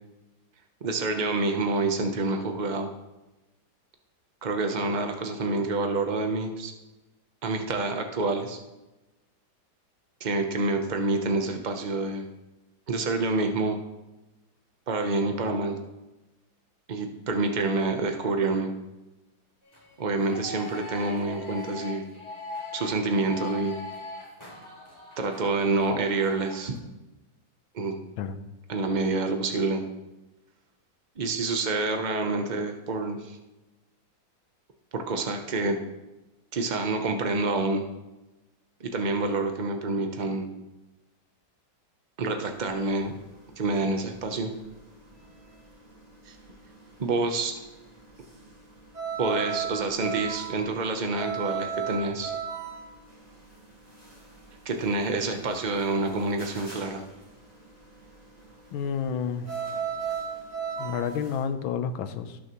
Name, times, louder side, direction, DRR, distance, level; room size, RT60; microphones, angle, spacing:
voice 1, 0.8-2.9 4.4-6.7 7.4-8.6 10.2-12.2 12.9-13.8 14.9-15.8 16.9-18.7 20.0-22.0 22.7-23.7 25.2-26.7 27.7-27.9 28.7-29.8 31.2-33.4 34.9-35.8 36.5-37.8 38.8-40.5 42.2-43.1 43.6-44.5 46.3-46.4 47.0-47.6 49.2-52.4 54.6-57.0, right 3 dB, 80° right, 5 dB, 0.4 m, -27 dB
sound 1, 19.6-26.8, left 3 dB, 15° left, 2.7 m, -41 dB
sound 2, 42.5-61.4, right 7 dB, 20° right, 2.3 m, -37 dB
voice 2, 58.7-59.5 60.8-62.4, left 7 dB, 80° left, 10 dB, 1.5 m, -30 dB
18.0 x 6.4 x 3.0 m, 1.0 s
omnidirectional pair, 2.2 m